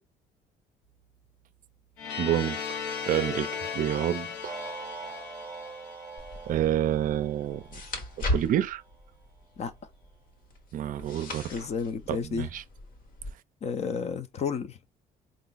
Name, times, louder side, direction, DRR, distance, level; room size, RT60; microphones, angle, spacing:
sound 1, 2.0-6.8, left 6 dB, 80° left, 0.9 m, -37 dB
voice 1, 2.2-2.8 3.1-4.5 6.5-7.6 8.3-8.8 10.7-11.7 12.1-12.6, right 11 dB, 55° right, 0.4 m, -28 dB
sound 2, 4.4-8.8, right 5 dB, 20° right, 0.7 m, -43 dB
sound 3, 6.2-13.3, left 1 dB, 55° left, 1.4 m, -38 dB
voice 2, 11.5-12.5 13.6-14.8, left 6 dB, 40° left, 0.6 m, -31 dB
4.0 x 2.5 x 3.9 m
cardioid pair, 110°, 17 cm